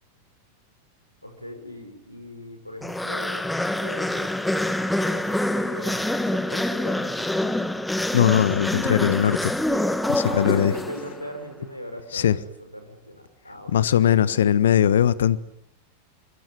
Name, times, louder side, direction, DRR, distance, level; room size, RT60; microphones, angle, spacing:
voice 1, 1.2-4.3 4.7-7.7 10.2-14.4, equal, 90° left, 5.7 m, -40 dB
sound 1, 2.8-11.3, left 1 dB, 5° left, 1.6 m, -26 dB
voice 2, 8.1-9.5 10.1-10.7 12.1-12.4 13.7-15.4, left 10 dB, 60° left, 1.3 m, -20 dB
24.5 x 24.5 x 9.7 m
figure-of-eight pair, 90°, 0 cm